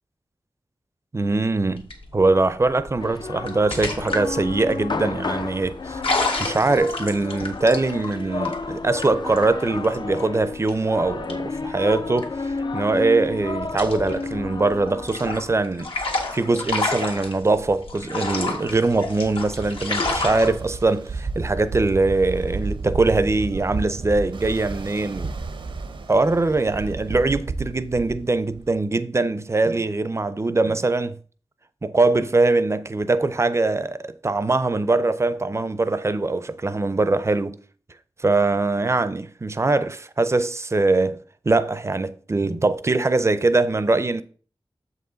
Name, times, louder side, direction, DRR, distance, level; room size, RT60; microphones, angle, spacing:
voice 1, 1.1-1.9 2.1-6.0 6.4-12.4 12.7-15.9 16.3-25.4 26.1-31.2 31.8-37.6 38.2-44.2, right 3 dB, 30° right, 0.5 m, -22 dB
sound 1, 1.7-12.9 13.3-20.5, left 3 dB, 80° left, 1.5 m, -30 dB
sound 2, 3.0-16.9, left 4 dB, 55° left, 0.5 m, -32 dB
Ocean, 19.0-28.8, right 3 dB, 65° right, 0.7 m, -32 dB
7.2 x 5.5 x 3.9 m
wide cardioid pair, 95°, 9 cm